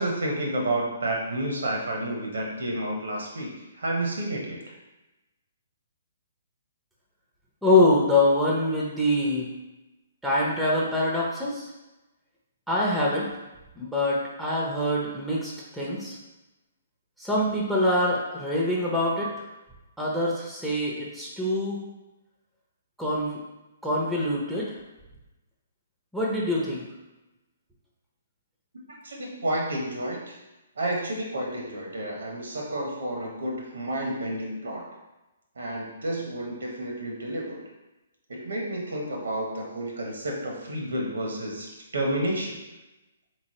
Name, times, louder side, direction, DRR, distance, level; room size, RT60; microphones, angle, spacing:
voice 1, 0.0-4.6 29.0-30.4 30.8-34.9 35.6-37.7 38.3-42.6, right 1 dB, 65° right, -1 dB, 1.0 m, -30 dB
voice 2, 7.6-9.5 10.2-11.6 12.7-13.3 13.8-16.2 17.2-19.3 20.0-21.8 23.0-23.4 23.8-24.7 26.1-26.8, left 1 dB, ahead, -5 dB, 0.7 m, -24 dB
4.1 x 3.1 x 2.9 m, 1.0 s
figure-of-eight pair, 125°, 0 cm